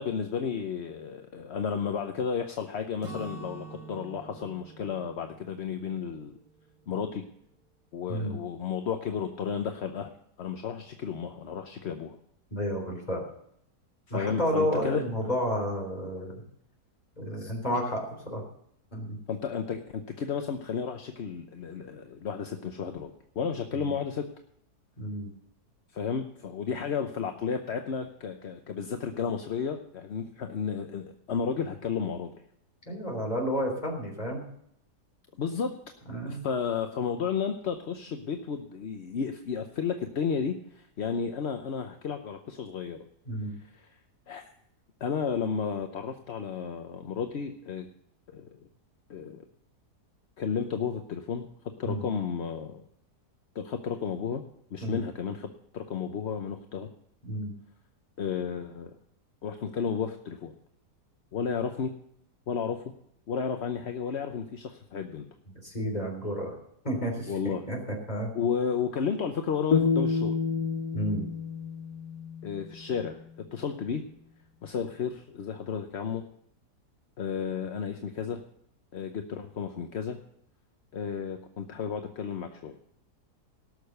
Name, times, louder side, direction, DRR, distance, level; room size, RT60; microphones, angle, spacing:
voice 1, 0.0-6.3 6.9-7.2 7.9-10.1 10.4-12.2 14.1-15.0 19.3-24.3 25.9-32.4 35.4-35.7 36.2-43.0 43.6-44.0 44.3-44.4 45.0-47.9 48.3-48.6 49.1-49.4 50.4-51.5 51.8-52.8 53.5-54.4 54.7-56.9 58.2-59.0 59.4-60.5 61.3-62.0 62.5-62.9 63.3-65.3 67.3-67.6 68.3-70.4 72.4-73.2 73.5-74.0 74.6-76.2 77.2-78.4 78.9-80.2 80.9-82.7, left 6 dB, 50° left, 6 dB, 0.9 m, -32 dB
Acoustic guitar / Strum, 3.0-7.0, right 3 dB, 70° right, 2.8 m, -46 dB
voice 2, 12.5-13.2 14.1-16.4 17.2-18.4 18.9-19.2 23.7-23.9 25.0-25.3 32.9-34.4 36.1-36.4 43.3-43.5 51.8-52.0 54.8-55.0 57.3-57.5 65.6-66.5 66.8-67.8 68.1-68.3 70.9-71.3, equal, 25° left, 0 dB, 3.8 m, -31 dB
sound 1, 69.7-72.8, left 5 dB, 70° left, 1.3 m, -29 dB
18.0 x 6.7 x 6.6 m, 0.71 s
omnidirectional pair, 1.8 m